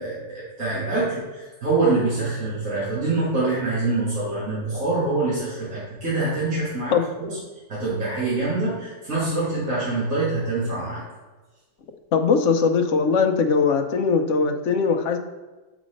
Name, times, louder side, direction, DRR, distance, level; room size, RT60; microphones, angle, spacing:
voice 1, 0.0-7.3 7.7-11.0, right 3 dB, 85° right, -9 dB, 2.4 m, -25 dB
voice 2, 12.1-15.2, left 5 dB, 65° left, 6 dB, 1.0 m, -20 dB
7.2 x 4.1 x 5.1 m, 1.2 s
omnidirectional pair, 1.4 m